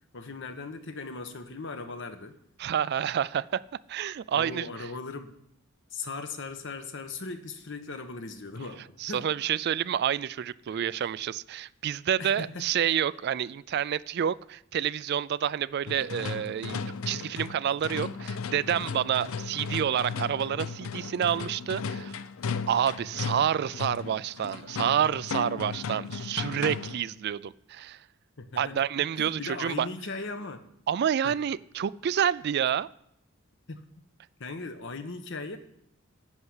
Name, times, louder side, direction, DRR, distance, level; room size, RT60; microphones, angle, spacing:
voice 1, 0.1-2.3 4.3-5.3 5.9-9.3 10.7-10.8 12.2-12.7 23.2-23.3 28.4-28.8 29.1-30.6 31.2-31.4 33.7-33.8 34.4-35.6, left 3 dB, 60° left, 1.1 m, -38 dB
voice 2, 2.6-3.6 3.9-4.7 9.0-16.8 17.1-22.2 22.7-28.0 28.6-29.9 30.9-32.9, right 9 dB, 50° right, 0.3 m, -28 dB
sound 1, 15.9-27.1, left 5 dB, 75° left, 0.5 m, -36 dB
11.0 x 5.8 x 8.1 m
head